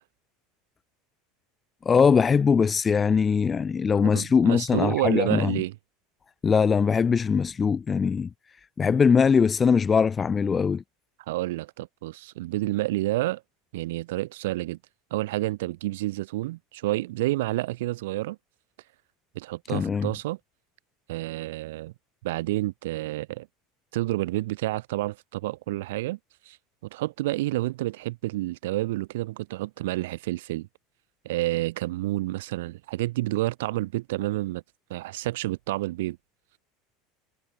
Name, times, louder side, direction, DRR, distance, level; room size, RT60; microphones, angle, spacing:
voice 1, 1.8-5.6 6.4-8.3 8.8-10.8 19.7-20.1, left 6 dB, 25° left, 1.4 m, -21 dB
voice 2, 4.0-5.7 11.3-13.4 13.7-14.8 15.1-18.4 19.3-20.4 21.1-21.9 22.2-23.5 23.9-26.2 26.5-26.6 26.9-30.7 31.2-34.6 34.9-36.2, right 18 dB, 70° right, 1.3 m, -29 dB
figure-of-eight pair, 75°, 0 cm